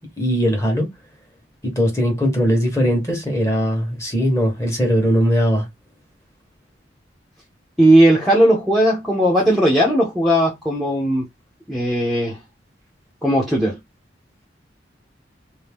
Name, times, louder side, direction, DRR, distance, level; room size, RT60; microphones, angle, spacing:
voice 1, 0.2-0.9 1.6-5.7, equal, 15° left, 1.1 m, -19 dB
voice 2, 7.8-11.3 11.7-12.4 13.2-13.8, right 1 dB, ahead, 0.7 m, -17 dB
2.7 x 2.6 x 3.5 m
head